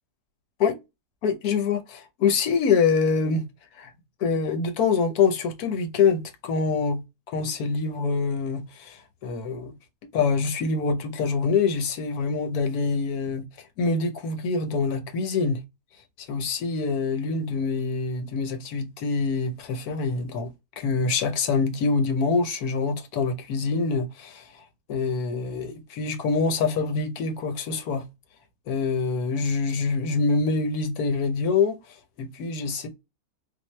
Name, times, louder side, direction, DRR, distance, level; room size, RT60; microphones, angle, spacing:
voice 1, 1.2-3.5 3.8-3.9 4.2-7.0 7.3-9.7 10.1-15.6 16.2-28.0 28.7-32.9, left 4 dB, 75° left, 1.3 m, -25 dB
4.0 x 2.3 x 3.1 m
omnidirectional pair, 1.6 m